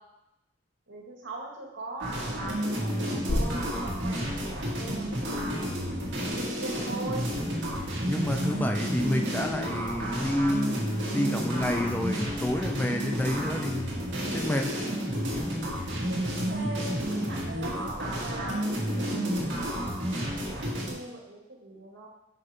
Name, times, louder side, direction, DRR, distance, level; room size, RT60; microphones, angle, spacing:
voice 1, 0.9-5.7 6.4-7.3 15.9-19.3 20.4-22.1, right 2 dB, 75° right, -2 dB, 2.0 m, -41 dB
sound 1, 2.0-20.9, equal, 60° right, 1.9 m, -31 dB
sound 2, 3.3-10.6 10.9-11.0, left 1 dB, 50° left, 0.6 m, -38 dB
voice 2, 8.1-13.9 14.3-14.9, left 1 dB, 10° left, 4 dB, 0.4 m, -29 dB
6.0 x 5.9 x 5.1 m, 0.89 s
head